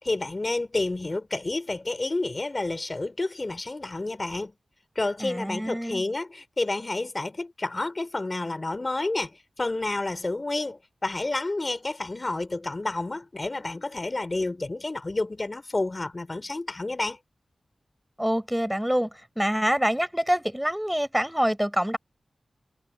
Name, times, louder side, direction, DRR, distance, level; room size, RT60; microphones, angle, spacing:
voice 1, 0.0-4.5 5.0-17.2, left 2 dB, 30° left, 3.4 m, -30 dB
voice 2, 5.2-6.0 18.2-22.0, equal, 5° right, 5.8 m, -26 dB
wide cardioid pair, 120°, 0 cm